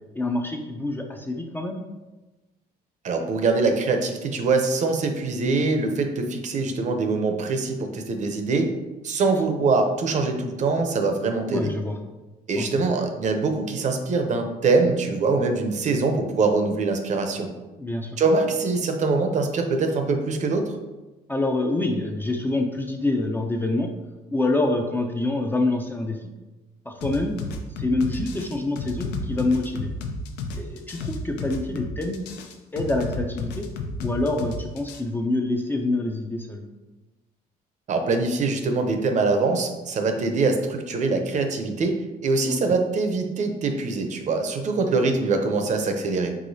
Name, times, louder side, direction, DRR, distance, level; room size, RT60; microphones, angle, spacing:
voice 1, 0.1-1.8 11.5-12.0 12.6-12.7 17.8-18.2 21.3-23.9 24.3-26.3 26.9-27.3 27.8-29.9 30.6-32.2 32.7-33.6 34.0-36.6 42.5-42.6, left 2 dB, 10° left, 3 dB, 0.4 m, -26 dB
voice 2, 3.0-8.7 9.0-11.7 12.5-17.5 18.2-20.8 37.9-41.9 42.2-46.3, right 3 dB, 45° right, 5 dB, 0.6 m, -23 dB
sound 1, 27.0-35.0, left 4 dB, 85° left, 0.6 m, -32 dB
4.8 x 3.7 x 2.7 m, 1.1 s
cardioid pair, 110°, 17 cm